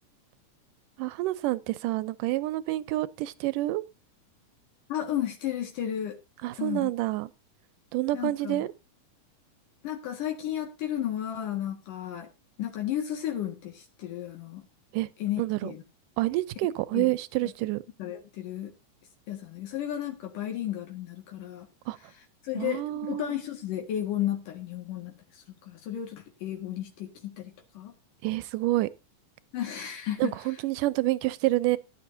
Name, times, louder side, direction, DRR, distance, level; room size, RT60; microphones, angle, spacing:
voice 1, 1.0-3.8 6.4-7.3 7.9-8.7 14.9-15.1 15.4-15.7 16.2-17.8 21.9-22.0 22.5-23.2 28.2-28.9 30.2-31.8, right 17 dB, 85° right, 2.3 m, -28 dB
voice 2, 4.9-6.2 6.6-6.9 8.1-8.7 9.8-12.3 12.6-14.6 15.2-15.8 16.9-17.1 18.0-18.7 19.3-21.7 22.4-27.9 29.5-30.3, left 11 dB, 80° left, 3.4 m, -33 dB
17.0 x 11.0 x 2.7 m
omnidirectional pair, 3.7 m